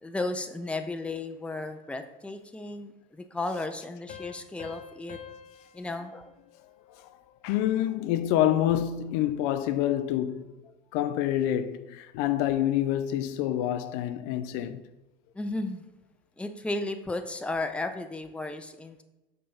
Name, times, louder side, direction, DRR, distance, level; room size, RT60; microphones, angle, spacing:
voice 1, 0.0-5.2 5.7-6.3 15.3-15.8 16.4-19.0, left 2 dB, 5° left, 0.7 m, -34 dB
sound 1, 4.1-7.4, left 8 dB, 25° left, 0.9 m, -48 dB
voice 2, 7.4-10.5 10.9-14.8, left 12 dB, 55° left, 0.6 m, -27 dB
6.4 x 5.5 x 5.6 m
hypercardioid pair, 75°, 29 cm